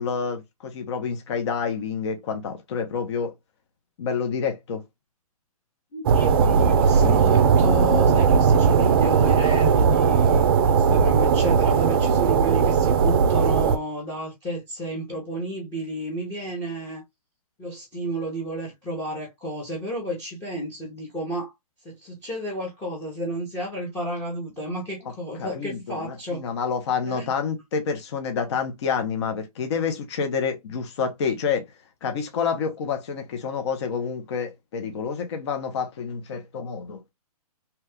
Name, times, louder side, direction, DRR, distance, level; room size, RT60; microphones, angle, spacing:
voice 1, 0.0-3.3 4.0-4.8 25.4-31.6 32.0-37.0, left 6 dB, 45° left, 0.7 m, -28 dB
voice 2, 5.9-17.0 17.6-21.5 21.8-26.4 27.0-27.2, right 1 dB, 10° left, 0.8 m, -31 dB
sound 1, 6.1-13.8, right 6 dB, 40° right, 0.4 m, -18 dB
2.9 x 2.2 x 3.2 m
hypercardioid pair, 155°, 19 cm